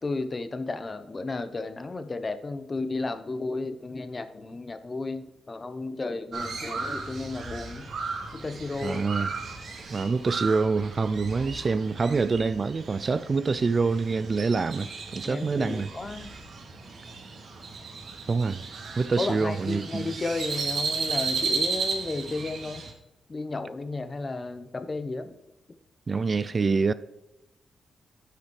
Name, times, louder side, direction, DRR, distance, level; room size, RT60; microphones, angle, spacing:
voice 1, 0.0-7.9 8.3-9.0 11.3-11.4 15.2-16.3 19.2-22.9 23.3-25.3, left 3 dB, 30° left, 1.0 m, -33 dB
Crow, 6.3-22.9, right 4 dB, 60° right, 2.2 m, -35 dB
voice 2, 8.8-9.3 9.9-15.9 18.3-18.7 19.0-20.1 26.1-26.9, right 4 dB, 40° right, 0.4 m, -26 dB
10.0 x 5.8 x 4.6 m
cardioid pair, 85°, 0 cm